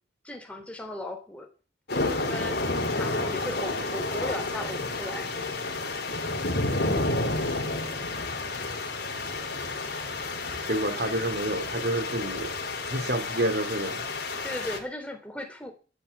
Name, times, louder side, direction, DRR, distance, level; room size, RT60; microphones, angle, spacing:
voice 1, 0.2-1.5 2.2-5.3 10.9-11.2 14.4-15.7, left 1 dB, 5° left, 3.5 m, -37 dB
sound 1, 1.9-14.8, left 2 dB, 55° left, 4.6 m, -30 dB
voice 2, 10.7-12.5 12.9-14.0, right 1 dB, 55° right, 3.2 m, -29 dB
14.5 x 10.0 x 8.8 m
head